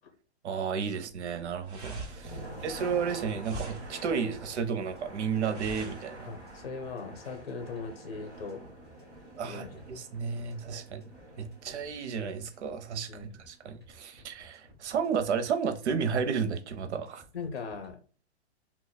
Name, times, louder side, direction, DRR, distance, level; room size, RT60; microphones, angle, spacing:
voice 1, 0.4-6.3 9.4-11.0 11.4-17.2, right 6 dB, 80° right, 0.7 m, -32 dB
sound 1, 1.1-6.6, right 2 dB, 35° right, 0.9 m, -44 dB
sound 2, 1.8-17.9, equal, 5° left, 0.3 m, -57 dB
sound 3, 1.8-13.7, right 1 dB, 15° right, 1.2 m, -47 dB
voice 2, 2.3-2.7 6.3-8.6 9.4-9.7 13.1-13.4 17.3-18.0, left 4 dB, 60° left, 1.0 m, -39 dB
2.9 x 2.3 x 3.9 m
hypercardioid pair, 170°, 34 cm